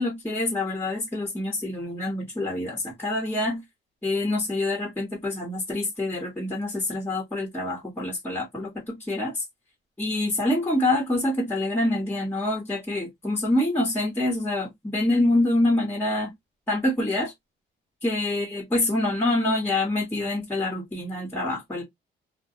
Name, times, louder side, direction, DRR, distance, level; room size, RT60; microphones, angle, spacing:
voice 1, 0.0-3.6 4.0-9.4 10.0-16.3 16.7-17.3 18.0-21.8, left 1 dB, 10° left, 1.1 m, -26 dB
2.2 x 2.2 x 2.7 m
cardioid pair, 90°, 20 cm